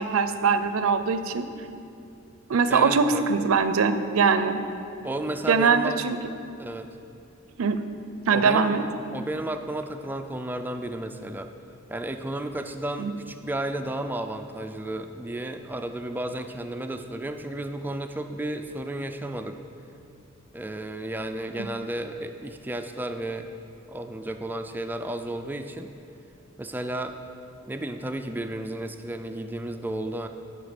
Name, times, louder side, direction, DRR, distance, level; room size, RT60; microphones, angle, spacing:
voice 1, 0.0-1.4 2.5-4.6 5.5-6.2 7.6-7.8 8.3-8.8 13.0-13.1 21.6-21.7, right 5 dB, 80° right, 10 dB, 0.5 m, -22 dB
voice 2, 2.7-3.2 5.0-6.1 6.6-6.9 8.3-11.5 11.9-19.6 20.5-23.5 23.9-25.9 26.6-27.1 27.7-30.3, right 1 dB, 10° right, 6 dB, 0.3 m, -33 dB
11.0 x 4.7 x 5.1 m, 2.6 s
head